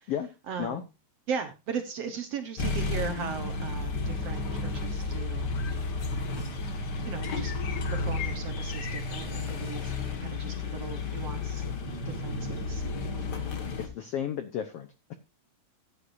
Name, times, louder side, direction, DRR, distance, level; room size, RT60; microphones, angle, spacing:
voice 1, 0.5-0.9 1.3-5.5 6.3-6.6 7.1-7.5 7.9-9.9 10.2-11.6 12.1-12.8, right 6 dB, 60° right, 7 dB, 1.8 m, -37 dB
sound 1, 2.6-13.9, left 3 dB, 40° left, 1.6 m, -32 dB
sound 2, 5.2-11.8, left 8 dB, 60° left, 2.2 m, -46 dB
voice 2, 13.8-15.1, left 9 dB, 75° left, 9 dB, 1.4 m, -33 dB
14.5 x 9.9 x 2.6 m, 0.28 s
omnidirectional pair, 4.0 m